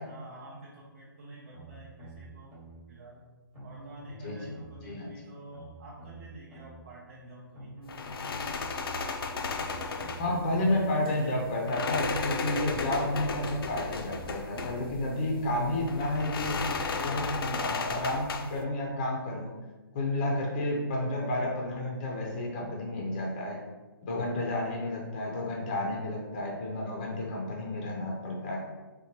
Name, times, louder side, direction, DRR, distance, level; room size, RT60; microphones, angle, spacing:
voice 1, 0.0-2.6 2.9-3.2 3.6-7.7, right 1 dB, 35° right, -5 dB, 0.5 m, -49 dB
sound 1, 1.5-2.8 3.5-4.8 5.5-6.8 7.5-8.8 9.5-10.8 11.5-12.8 13.5-14.8 15.5-16.8 17.5-17.6, right 1 dB, 5° right, 0.8 m, -46 dB
voice 2, 4.1-4.5 4.8-5.1 10.1-16.6 17.0-19.5 19.9-23.6 24.0-28.6, left 1 dB, 25° left, -2 dB, 0.4 m, -31 dB
sound 2, 7.9-18.6, left 4 dB, 80° left, 0.4 m, -35 dB
4.0 x 2.1 x 2.9 m, 1.2 s
hypercardioid pair, 170°, 12 cm